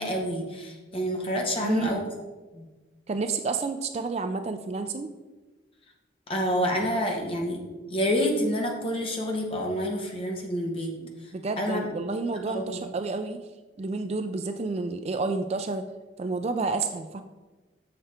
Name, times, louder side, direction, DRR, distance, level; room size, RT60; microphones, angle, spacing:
voice 1, 0.0-2.0 2.5-2.6 6.3-7.6 7.9-10.9 11.6-11.8 12.5-12.8, equal, 30° left, 1 dB, 1.2 m, -28 dB
voice 2, 1.6-2.0 3.1-5.1 11.0-13.4 13.8-15.8 16.2-17.2, right 3 dB, 35° right, 8 dB, 0.3 m, -30 dB
6.7 x 6.6 x 4.4 m, 1.2 s
head